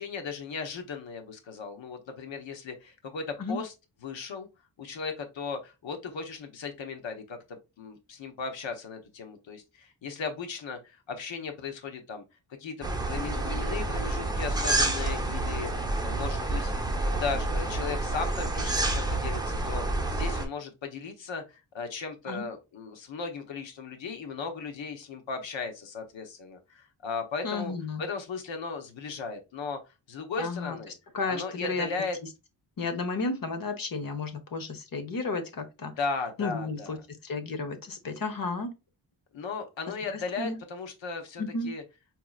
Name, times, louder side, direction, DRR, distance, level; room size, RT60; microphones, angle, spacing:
voice 1, 0.0-3.7 4.0-4.5 4.8-12.2 12.6-27.7 28.0-30.9 31.3-32.2 36.0-37.0 39.3-41.8, left 4 dB, 85° left, 1.0 m, -36 dB
sound 1, 12.8-20.4, right 2 dB, 10° right, 0.8 m, -29 dB
voice 2, 27.4-28.0 30.4-30.8 31.1-31.9 32.8-35.9 36.4-37.0 37.2-38.7 40.1-40.6 41.4-41.7, left 3 dB, 50° left, 1.0 m, -32 dB
4.8 x 2.9 x 2.3 m
wide cardioid pair, 90°, 44 cm